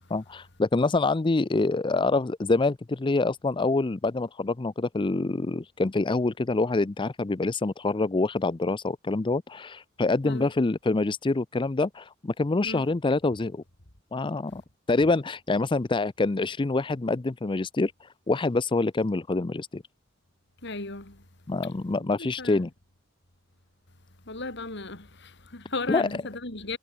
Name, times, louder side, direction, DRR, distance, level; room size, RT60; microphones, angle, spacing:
voice 1, 0.1-13.6 14.1-14.6 14.9-19.8 21.5-22.7 25.9-26.1, left 3 dB, 25° left, 0.5 m, -26 dB
voice 2, 20.6-21.2 22.0-22.6 24.3-26.8, left 3 dB, 60° left, 3.6 m, -36 dB
head